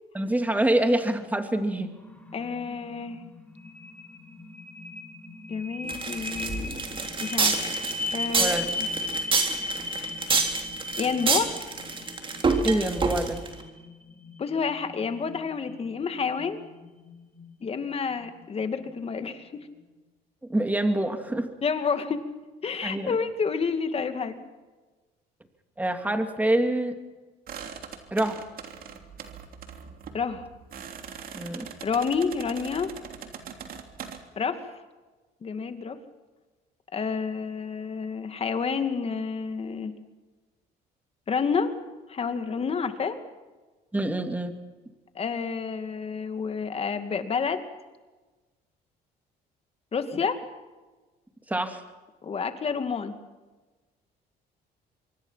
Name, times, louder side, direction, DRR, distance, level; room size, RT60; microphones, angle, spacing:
voice 1, 0.1-1.9 8.4-8.6 12.6-13.4 20.5-21.5 22.8-23.2 25.8-27.0 28.1-28.4 31.3-31.7 43.9-44.5 51.5-51.8, right 1 dB, 10° right, 6 dB, 2.7 m, -26 dB
sound 1, 1.8-19.2, left 2 dB, 10° left, 4.7 m, -38 dB
voice 2, 2.3-3.2 5.5-6.8 7.2-7.7 8.1-8.9 11.0-11.5 14.4-16.6 17.6-19.7 21.6-22.2 22.6-24.5 30.1-30.5 31.8-32.9 34.4-34.6 35.4-36.0 36.9-39.9 41.3-41.7 42.1-43.2 45.1-47.6 49.9-50.4 52.2-53.1, left 5 dB, 35° left, 8 dB, 2.4 m, -29 dB
sound 2, 5.9-13.5, right 4 dB, 30° right, 3.5 m, -27 dB
sound 3, 27.5-34.2, right 7 dB, 60° right, 3.1 m, -42 dB
25.5 x 23.5 x 5.8 m, 1.2 s
cardioid pair, 110°, 17 cm